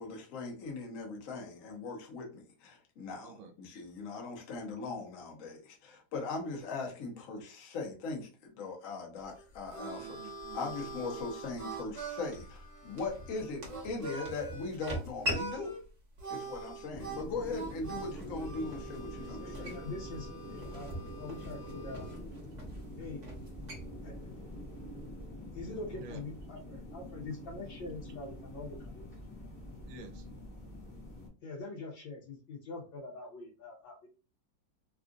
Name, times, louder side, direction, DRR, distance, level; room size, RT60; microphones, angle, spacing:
voice 1, 0.0-10.2 10.5-15.7 16.3-19.8, left 3 dB, 55° left, 1 dB, 1.0 m, -40 dB
sound 1, 9.2-25.3, equal, 35° right, 0.7 m, -45 dB
Harmonica, 9.2-15.0 15.3-15.8 16.2-22.2, right 4 dB, 50° right, 1.6 m, -44 dB
voice 2, 10.0-11.2 25.9-26.2 29.8-30.2, right 4 dB, 85° right, 6 dB, 1.5 m, -50 dB
sound 2, 16.9-31.3, left 1 dB, 20° left, 0.8 m, -46 dB
voice 3, 19.2-22.2 23.0-23.2 24.0-24.1 25.5-29.1 31.4-34.1, left 3 dB, 75° left, -3 dB, 1.4 m, -44 dB
3.6 x 2.4 x 2.4 m, 0.34 s
omnidirectional pair, 2.1 m